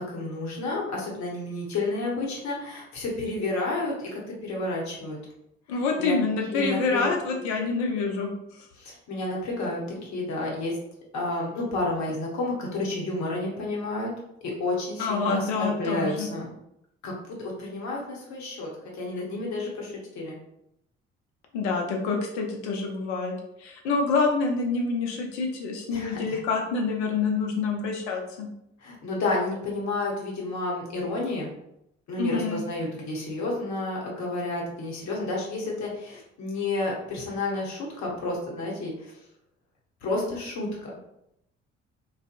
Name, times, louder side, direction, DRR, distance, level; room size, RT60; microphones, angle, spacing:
voice 1, 0.0-5.2 5.7-6.1 6.5-7.1 8.8-10.8 11.1-14.2 14.6-16.5 17.0-20.4 25.9-26.4 28.8-31.5 32.1-39.1 40.0-40.9, left 2 dB, 55° left, -2 dB, 1.0 m, -31 dB
voice 2, 5.7-8.3 15.0-16.3 21.5-23.3 23.6-28.5 32.2-32.6, left 4 dB, 75° left, 2 dB, 0.6 m, -27 dB
2.5 x 2.3 x 2.5 m, 0.81 s
figure-of-eight pair, 45°, 34 cm